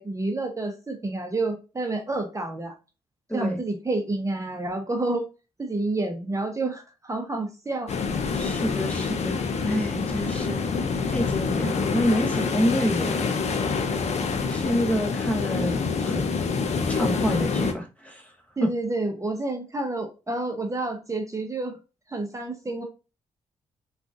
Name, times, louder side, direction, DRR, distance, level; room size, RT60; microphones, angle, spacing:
voice 1, 0.0-2.7 3.3-5.3 5.6-7.9 18.6-21.8 22.1-22.8, right 2 dB, 20° right, 0.8 m, -29 dB
voice 2, 3.3-3.6 8.3-10.6 11.1-13.3 14.5-16.3 16.9-18.3 18.6-18.7, equal, 10° left, 1.0 m, -27 dB
sound 1, 7.9-17.7, left 5 dB, 50° left, 0.6 m, -26 dB
3.6 x 2.4 x 2.4 m
hypercardioid pair, 40°, 14 cm